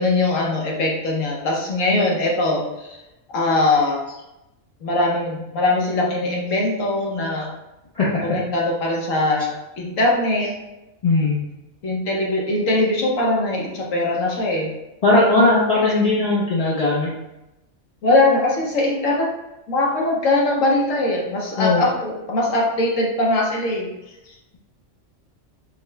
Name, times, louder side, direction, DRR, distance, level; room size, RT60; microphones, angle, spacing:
voice 1, 0.0-3.0 3.3-4.2 4.8-7.5 8.2-10.5 11.8-14.7 16.1-16.2 18.0-19.3 19.7-23.9 24.3-24.4, left 2 dB, 85° left, -2 dB, 1.2 m, -21 dB
voice 2, 11.0-11.4 15.0-17.1 21.6-21.8, left 2 dB, 45° left, -6 dB, 0.5 m, -18 dB
4.1 x 2.1 x 3.3 m, 0.94 s
omnidirectional pair, 1.3 m